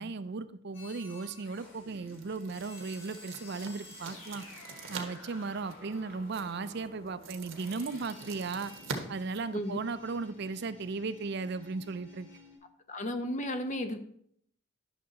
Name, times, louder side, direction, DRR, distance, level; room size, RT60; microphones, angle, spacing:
voice 1, 0.0-4.4 4.9-8.7 9.1-12.3, right 4 dB, 55° right, 13 dB, 0.5 m, -36 dB
sound 1, 0.7-12.6, left 2 dB, 75° left, 3.9 m, -52 dB
sound 2, 1.1-10.2, right 4 dB, 75° right, 1.5 m, -46 dB
voice 2, 12.9-14.0, left 1 dB, 35° left, 8 dB, 0.8 m, -33 dB
11.0 x 6.5 x 4.1 m, 0.66 s
head